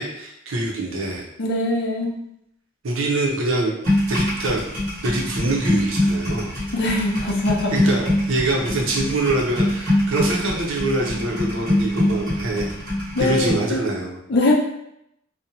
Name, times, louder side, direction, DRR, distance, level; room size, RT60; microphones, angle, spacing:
voice 1, 0.0-1.2 2.8-3.7 4.1-4.6 5.0-6.5 7.7-12.7 13.2-14.2, right 2 dB, 80° right, -1 dB, 0.6 m, -24 dB
voice 2, 1.4-2.1 6.7-7.7 13.1-13.8 14.3-14.5, left 2 dB, 55° left, -1 dB, 0.5 m, -22 dB
sound 1, 3.8-13.6, left 1 dB, 40° right, 1.3 m, -24 dB
2.6 x 2.1 x 2.7 m, 0.77 s
head